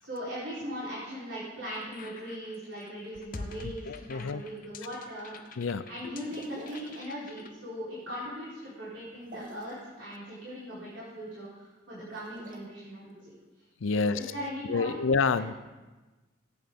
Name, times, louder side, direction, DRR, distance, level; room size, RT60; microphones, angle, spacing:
voice 1, 0.0-5.4 5.9-13.3 13.9-15.0 15.3-15.4, equal, 80° right, -10 dB, 4.0 m, -39 dB
sound 1, 1.7-7.5, left 3 dB, 45° left, 0.7 m, -46 dB
voice 2, 3.6-4.4 5.6-6.1 13.8-14.2 14.6-15.5, left 4 dB, 90° left, 14 dB, 0.5 m, -28 dB
sound 2, 6.3-7.0 9.2-9.8 12.0-12.6, equal, 45° right, 1.5 m, -47 dB
18.0 x 8.7 x 3.7 m, 1.2 s
head